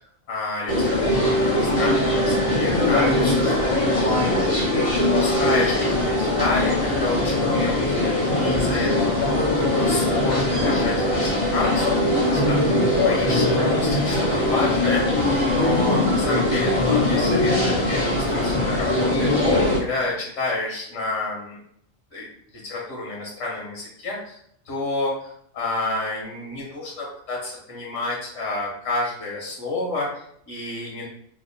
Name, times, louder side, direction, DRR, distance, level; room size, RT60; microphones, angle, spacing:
voice 1, 0.3-4.1 4.7-12.8 13.0-21.6 22.1-24.4 24.6-25.1 25.5-31.1, left 2 dB, 90° left, -3 dB, 1.1 m, -30 dB
sound 1, 0.7-19.8, left 1 dB, 30° left, 1.0 m, -21 dB
2.8 x 2.1 x 3.9 m, 0.70 s
omnidirectional pair, 1.3 m